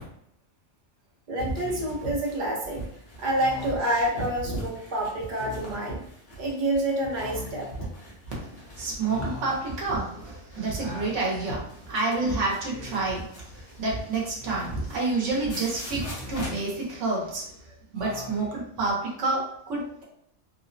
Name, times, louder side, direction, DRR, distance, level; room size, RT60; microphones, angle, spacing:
voice 1, 1.3-2.8 3.2-6.0 6.4-7.7, right 1 dB, 45° right, -2 dB, 0.8 m, -28 dB
sound 1, 1.4-16.9, right 1 dB, 55° left, 1.0 m, -38 dB
Speech, 1.6-2.1 3.3-4.1 5.3-5.9 7.1-7.8 9.1-9.7 10.8-11.5 12.6-13.2 14.4-15.1 16.0-16.8 17.9-18.6, left 2 dB, 65° right, 1.3 m, -42 dB
voice 2, 8.4-20.0, right 3 dB, 85° right, -3 dB, 1.3 m, -29 dB
3.4 x 2.0 x 2.6 m, 0.72 s
omnidirectional pair, 1.2 m